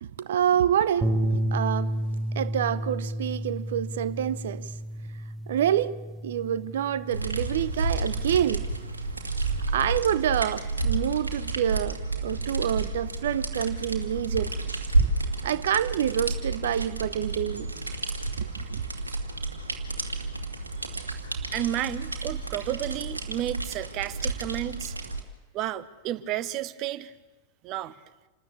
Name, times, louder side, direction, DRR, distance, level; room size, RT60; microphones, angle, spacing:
voice 1, 0.0-1.9 2.3-4.7 5.5-8.7 9.7-14.5 15.4-17.8 18.4-18.8, right 10 dB, 60° right, 0.8 m, -27 dB
sound 1, 1.0-9.4, equal, 15° right, 1.3 m, -32 dB
sound 2, 7.1-25.2, right 2 dB, 80° right, 2.1 m, -31 dB
voice 2, 21.5-24.9 25.5-27.1 27.6-27.9, right 12 dB, 40° right, 1.1 m, -32 dB
27.5 x 13.5 x 8.7 m
figure-of-eight pair, 90°, 0 cm